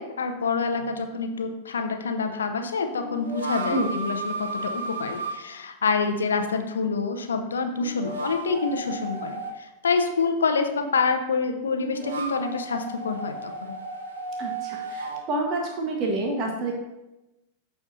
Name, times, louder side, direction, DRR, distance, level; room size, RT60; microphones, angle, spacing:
voice 1, 0.0-13.8, left 4 dB, 70° left, 6 dB, 0.7 m, -27 dB
sound 1, 0.8-0.9 2.9-5.4 7.7-9.6 11.6-15.2, right 2 dB, 65° right, 0.9 m, -34 dB
voice 2, 14.4-16.7, right 2 dB, 35° right, 1 dB, 1.2 m, -28 dB
13.5 x 4.7 x 2.6 m, 0.97 s
figure-of-eight pair, 90°, 0 cm